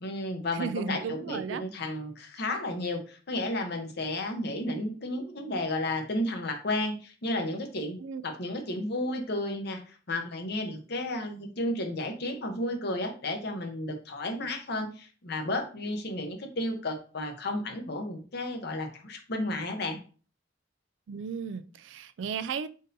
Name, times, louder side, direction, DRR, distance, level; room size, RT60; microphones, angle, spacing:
voice 1, 0.0-8.0 8.2-20.0, left 1 dB, 60° left, 5 dB, 0.8 m, -32 dB
voice 2, 0.5-1.6 8.0-8.2 21.1-22.7, right 6 dB, 75° right, 14 dB, 0.3 m, -34 dB
3.7 x 2.6 x 3.9 m, 0.38 s
head